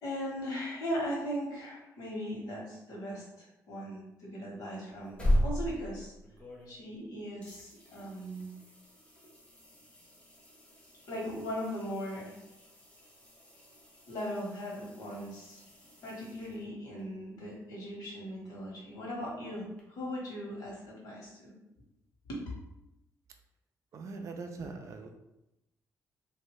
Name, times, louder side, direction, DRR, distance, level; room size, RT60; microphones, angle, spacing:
voice 1, 0.0-6.1 6.7-8.5 11.1-12.3 14.1-15.6 16.0-21.5 22.2-22.4 24.6-24.7, equal, 75° left, -3 dB, 1.3 m, -39 dB
sound 1, 4.9-7.0 7.4-17.0 19.8-19.9, equal, 20° left, 0.8 m, -38 dB
voice 2, 23.9-25.1, right 4 dB, 55° right, 5 dB, 0.4 m, -42 dB
3.3 x 2.6 x 3.1 m, 0.90 s
cardioid pair, 135°, 6 cm